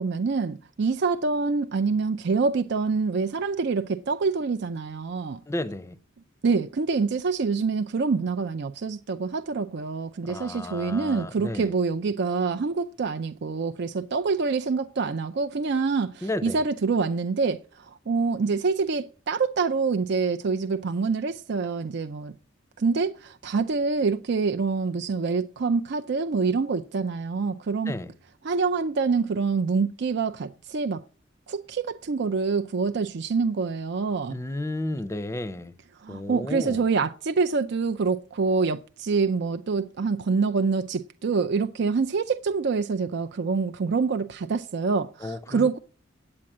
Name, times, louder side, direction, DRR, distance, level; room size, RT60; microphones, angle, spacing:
voice 1, 0.0-5.4 6.4-22.3 22.8-27.9 28.4-31.0 31.5-34.4 36.0-45.8, right 4 dB, 60° right, 0.5 m, -26 dB
voice 2, 5.5-6.0 10.2-11.7 16.2-16.6 27.9-28.1 34.3-35.7 36.1-36.9 45.2-45.8, left 1 dB, 15° left, 0.6 m, -32 dB
8.8 x 8.6 x 7.2 m
head